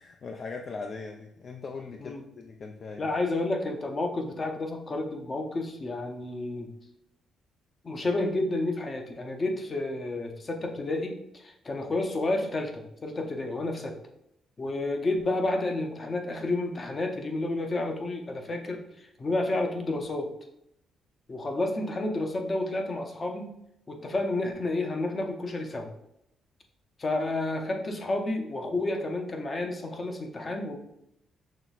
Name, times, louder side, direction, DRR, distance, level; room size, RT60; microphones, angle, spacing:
voice 1, 0.0-3.2, left 4 dB, 50° left, 4 dB, 0.3 m, -40 dB
voice 2, 3.0-6.7 7.8-14.0 14.6-20.3 21.3-23.5 23.9-25.9 27.0-30.8, left 2 dB, 35° left, 3 dB, 0.7 m, -30 dB
5.7 x 3.0 x 2.4 m, 0.80 s
cardioid pair, 90°, 0 cm